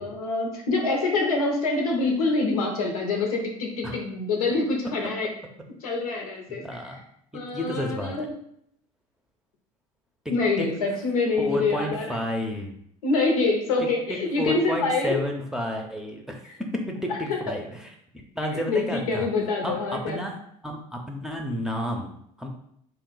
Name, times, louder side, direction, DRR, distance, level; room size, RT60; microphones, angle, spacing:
voice 1, 0.0-5.3 5.8-6.8 7.3-8.3 10.3-12.1 13.0-15.2 17.1-17.5 18.5-20.2, left 3 dB, 85° left, 1 dB, 0.7 m, -26 dB
voice 2, 6.6-7.0 7.3-8.1 10.6-10.7 11.4-12.8 13.8-17.9 18.4-19.3 19.6-20.4 20.6-22.5, equal, 5° right, 1 dB, 0.6 m, -31 dB
2.8 x 2.0 x 3.9 m, 0.69 s
hypercardioid pair, 70°, 18 cm